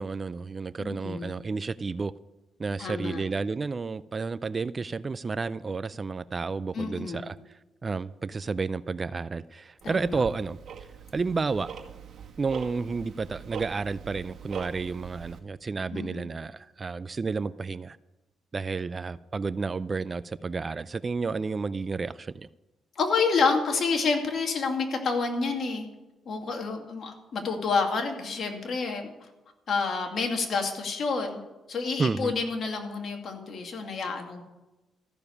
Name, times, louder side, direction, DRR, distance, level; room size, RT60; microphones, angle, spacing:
voice 1, 0.0-2.1 2.6-7.4 7.8-10.6 11.1-11.7 12.4-18.0 18.5-22.5 32.0-32.3, right 4 dB, 30° right, 17 dB, 0.4 m, -31 dB
voice 2, 0.8-1.3 2.8-3.2 6.7-7.2 9.8-10.2 15.9-16.3 23.0-25.8 26.3-29.1 29.7-31.4 31.7-34.4, left 4 dB, 55° left, 3 dB, 2.4 m, -28 dB
Tick-tock, 9.8-15.4, right 7 dB, 60° right, 2.0 m, -42 dB
14.0 x 6.9 x 9.7 m, 1.1 s
cardioid pair, 90°, 0 cm